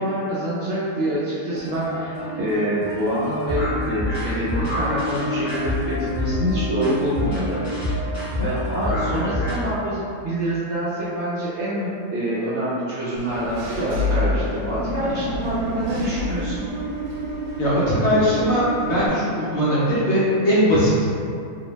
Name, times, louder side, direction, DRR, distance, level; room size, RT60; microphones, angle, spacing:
voice 1, 0.0-7.6 8.4-16.6, equal, 65° right, -9 dB, 0.7 m, -26 dB
sound 1, 1.5-9.5, left 1 dB, 15° left, 0.7 m, -27 dB
Engine / Mechanisms, 13.2-19.1, equal, 80° right, 1.1 m, -28 dB
voice 2, 17.6-21.0, equal, 65° left, -9 dB, 0.7 m, -20 dB
2.6 x 2.1 x 3.0 m, 2.4 s
omnidirectional pair, 1.6 m